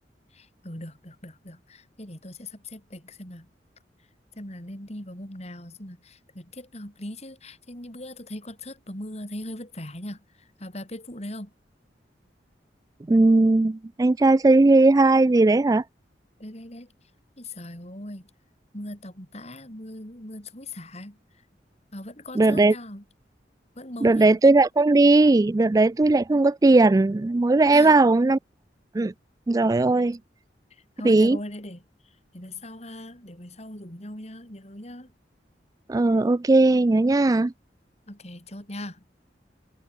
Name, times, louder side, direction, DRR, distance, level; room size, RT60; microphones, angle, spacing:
voice 1, 0.3-3.5 4.3-11.5 16.4-16.9 17.4-18.3 18.7-21.2 21.9-23.0 23.7-24.4 27.7-28.0 30.0-30.1 30.7-35.1 38.1-39.0, left 1 dB, 40° left, 6.7 m, -40 dB
voice 2, 13.1-15.8 22.4-22.7 24.0-28.4 28.9-29.1 29.5-30.2 31.0-31.4 35.9-37.5, right 2 dB, 20° right, 0.3 m, -18 dB
head